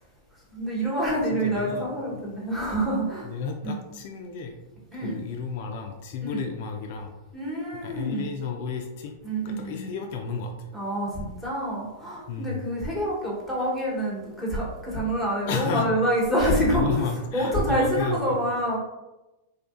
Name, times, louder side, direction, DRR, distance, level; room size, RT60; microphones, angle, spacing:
voice 1, 0.5-3.3 3.6-3.8 4.9-5.2 6.2-6.4 7.3-8.3 9.2-9.9 10.7-17.1 17.3-18.8, right 1 dB, 5° right, -6 dB, 1.1 m, -27 dB
voice 2, 1.3-1.8 2.1-2.2 3.2-4.5 5.0-7.1 7.8-9.1 9.4-10.7 12.3-12.7 15.5-15.9 16.4-18.3, left 5 dB, 60° left, 3 dB, 0.3 m, -32 dB
2.7 x 2.4 x 2.5 m, 1.0 s
hypercardioid pair, 125°, 0 cm